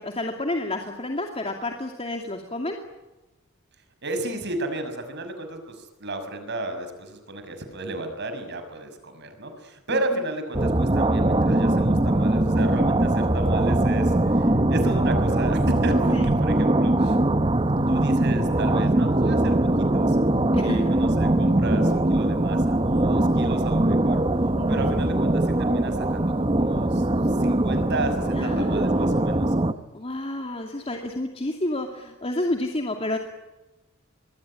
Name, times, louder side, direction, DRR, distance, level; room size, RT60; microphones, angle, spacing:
voice 1, 0.0-2.8 16.1-16.3 20.5-20.8 24.5-25.0 28.4-28.7 29.9-33.2, left 1 dB, 30° left, 3 dB, 2.6 m, -30 dB
voice 2, 4.0-17.2 17.9-19.6 19.9-20.2 20.6-24.2 24.7-29.5, right 2 dB, 55° right, 7 dB, 6.1 m, -33 dB
sound 1, 10.5-29.7, right 1 dB, 25° right, 1.1 m, -21 dB
25.5 x 22.0 x 9.9 m, 1.1 s
head